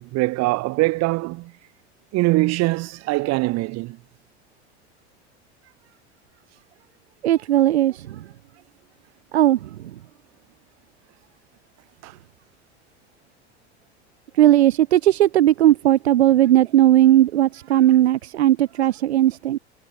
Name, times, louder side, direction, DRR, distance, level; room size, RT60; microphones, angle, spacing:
voice 1, 0.0-1.5 2.1-4.0 12.0-12.1, right 21 dB, 50° right, 6.1 m, -22 dB
voice 2, 7.2-8.2 9.3-9.7 14.4-19.6, right 13 dB, 70° right, 3.7 m, -17 dB
figure-of-eight pair, 75°, 33 cm